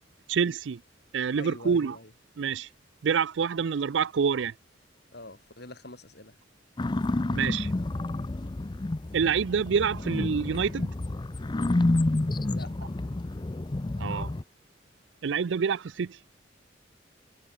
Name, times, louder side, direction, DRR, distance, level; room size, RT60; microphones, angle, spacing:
voice 1, 0.3-0.8 1.1-2.0 2.4-2.7 3.0-4.5 7.3-7.7 9.1-10.9 14.0-14.3 15.2-16.2, right 6 dB, 70° right, 0.4 m, -27 dB
voice 2, 1.4-2.1 5.1-6.4 12.4-13.0, left 2 dB, 60° left, 5.6 m, -45 dB
sound 1, 6.8-14.4, left 2 dB, 25° left, 0.5 m, -29 dB
head